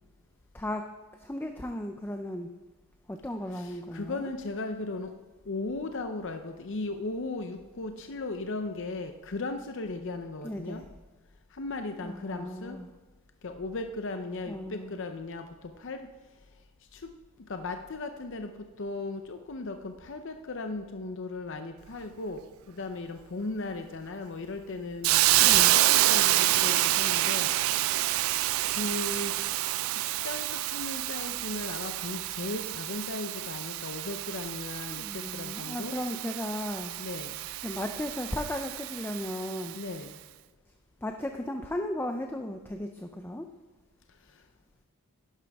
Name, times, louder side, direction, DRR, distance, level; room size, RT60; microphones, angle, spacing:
voice 1, 0.5-2.5 3.1-4.3 10.4-10.8 12.0-12.9 14.5-15.0 25.4-25.8 34.9-36.9 37.6-39.8 41.0-43.5, left 1 dB, 10° left, 5 dB, 0.4 m, -35 dB
voice 2, 3.5-5.1 5.5-10.8 11.5-12.8 13.4-15.5 15.8-16.0 16.9-17.0 17.5-18.5 18.8-22.4 22.7-27.5 28.7-29.5 30.0-36.0 37.0-37.4 39.7-40.1, left 2 dB, 55° left, 7 dB, 0.6 m, -37 dB
Hiss, 25.0-39.8, right 16 dB, 65° right, 0.3 m, -28 dB
11.0 x 11.0 x 3.5 m, 1.3 s
head